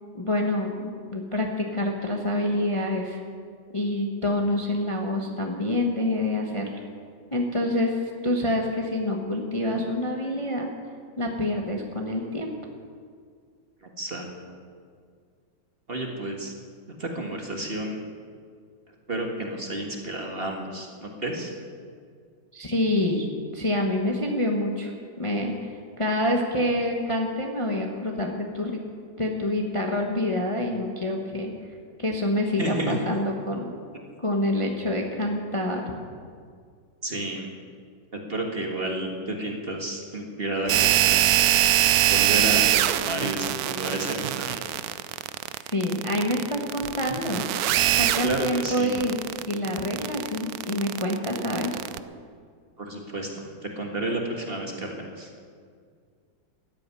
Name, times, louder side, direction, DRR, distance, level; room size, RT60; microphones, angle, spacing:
voice 1, 0.1-3.2 3.7-6.7 7.3-8.0 8.2-10.7 11.2-12.5 22.5-23.3 23.5-24.9 25.2-28.8 29.2-31.5 32.0-33.7 34.2-35.8 45.7-47.4 47.9-51.8, left 1 dB, 20° left, 1 dB, 1.1 m, -27 dB
voice 2, 13.8-14.3 15.9-16.5 17.0-18.0 19.1-21.5 32.6-33.0 34.1-34.2 37.0-37.5 38.1-41.4 42.1-44.6 48.2-49.0 52.8-53.5 53.8-55.3, right 1 dB, 30° right, 1 dB, 1.7 m, -31 dB
sound 1, 40.7-52.0, right 12 dB, 75° right, 0.8 m, -23 dB
13.5 x 8.9 x 9.8 m, 2.1 s
omnidirectional pair, 2.1 m